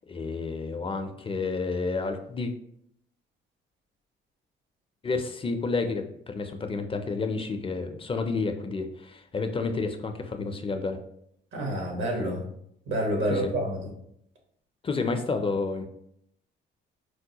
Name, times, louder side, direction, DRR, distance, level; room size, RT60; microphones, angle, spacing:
voice 1, 0.1-2.5 5.0-11.0 13.3-13.5 14.8-15.9, left 4 dB, 30° left, 6 dB, 0.4 m, -30 dB
voice 2, 11.5-12.4 12.9-13.8, right 1 dB, 75° right, 0 dB, 1.2 m, -28 dB
4.5 x 2.1 x 2.8 m, 0.72 s
cardioid pair, 90°, 20 cm